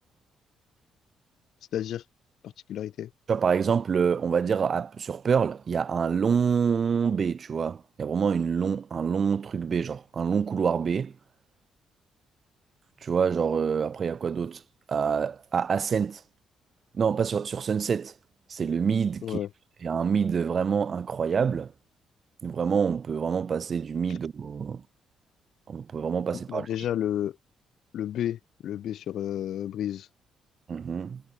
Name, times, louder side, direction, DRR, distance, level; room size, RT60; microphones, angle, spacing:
voice 1, 1.7-2.0 2.4-3.1 19.2-19.5 24.1-24.2 26.3-27.4 27.9-30.1, left 11 dB, 60° left, 3.3 m, -31 dB
voice 2, 3.3-11.1 13.0-14.6 14.9-16.2 16.9-18.1 18.5-19.4 19.8-21.7 22.4-24.8 25.7-26.7 30.7-31.2, right 6 dB, 35° right, 1.5 m, -26 dB
cardioid pair, 170°, 0 cm